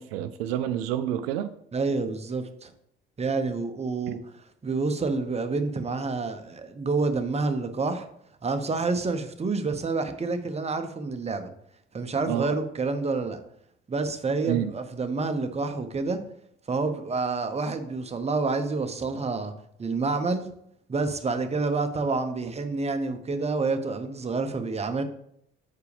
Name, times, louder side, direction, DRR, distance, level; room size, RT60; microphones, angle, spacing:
voice 1, 0.0-1.5 4.1-4.2 12.3-12.5 14.5-14.7, right 11 dB, 75° right, 11 dB, 0.4 m, -28 dB
voice 2, 1.7-2.7 3.2-4.2 4.6-8.1 8.4-11.5 11.9-13.4 13.9-16.2 16.7-19.5 19.8-20.4 20.9-25.0, right 3 dB, 20° right, 8 dB, 0.8 m, -28 dB
7.1 x 4.6 x 3.3 m, 0.72 s
hypercardioid pair, 60°, 30 cm